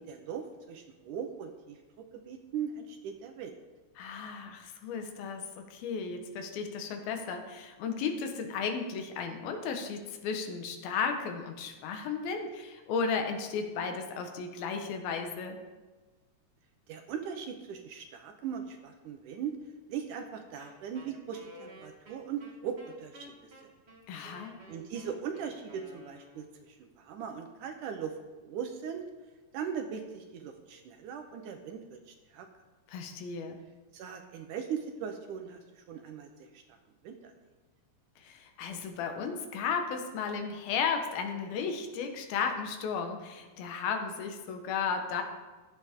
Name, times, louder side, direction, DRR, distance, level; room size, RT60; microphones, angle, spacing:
voice 1, 0.0-3.5 16.9-19.5 19.9-23.7 24.7-28.2 28.4-29.1 29.5-32.5 33.9-36.6 37.0-37.3, right 7 dB, 70° right, 5 dB, 2.1 m, -39 dB
voice 2, 4.0-15.6 24.1-24.6 32.9-33.6 38.2-45.2, left 5 dB, 85° left, 5 dB, 3.0 m, -34 dB
Wind instrument woodwind instrument, 20.6-26.6, equal, 50° right, 0.7 m, -52 dB
15.0 x 11.0 x 3.7 m, 1.3 s
omnidirectional pair, 4.2 m